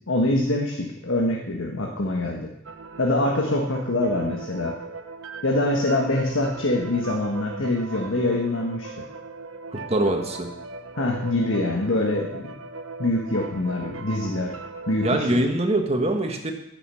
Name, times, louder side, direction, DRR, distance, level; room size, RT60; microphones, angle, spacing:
voice 1, 0.1-2.5 3.0-4.7 5.4-9.1 11.0-12.5 13.0-14.5 14.9-15.4, left 2 dB, 85° left, 0 dB, 1.5 m, -24 dB
sound 1, 2.6-15.3, right 3 dB, 90° right, 0.9 m, -38 dB
voice 2, 9.7-10.5 15.0-16.5, right 1 dB, 30° right, 4 dB, 1.5 m, -23 dB
15.0 x 6.9 x 5.7 m, 0.82 s
head